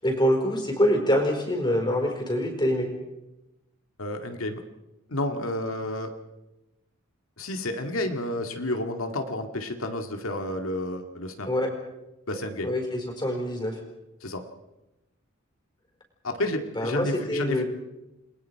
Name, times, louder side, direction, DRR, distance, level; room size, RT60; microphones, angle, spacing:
voice 1, 0.0-2.9 11.5-11.7 12.6-13.8 16.8-17.6, equal, 20° left, 3 dB, 4.6 m, -25 dB
voice 2, 4.0-4.6 5.1-6.1 7.4-11.5 12.3-12.7 14.2-14.4 16.2-17.6, left 1 dB, 85° left, 5 dB, 2.1 m, -30 dB
29.0 x 21.5 x 4.7 m, 0.97 s
head